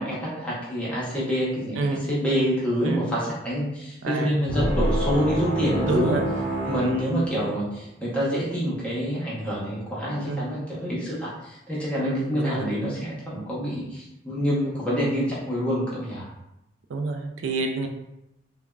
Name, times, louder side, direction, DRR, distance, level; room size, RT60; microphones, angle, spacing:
voice 1, 0.0-6.2 6.7-16.3, equal, 5° left, -7 dB, 0.7 m, -27 dB
voice 2, 1.8-2.1 2.9-3.1 4.0-4.3 5.8-6.2 6.8-7.1 10.3-10.5 12.0-12.7 16.9-17.9, right 3 dB, 80° right, 4 dB, 0.3 m, -28 dB
sound 1, 4.5-7.8, equal, 35° right, 1.0 m, -27 dB
3.2 x 2.1 x 2.3 m, 0.90 s
head